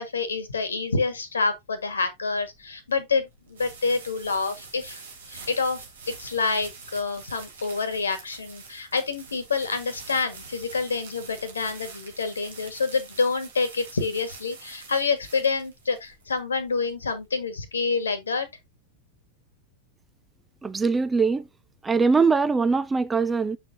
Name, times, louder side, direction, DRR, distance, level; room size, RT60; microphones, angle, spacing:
voice 1, 0.0-5.0 5.3-5.8 6.2-18.5, left 4 dB, 70° left, 1.5 m, -27 dB
sound 1, 2.4-17.3, right 4 dB, 65° right, 2.4 m, -45 dB
voice 2, 20.6-21.5 21.8-23.6, right 4 dB, 15° right, 0.5 m, -22 dB
6.9 x 6.6 x 2.7 m
figure-of-eight pair, 90°, 0 cm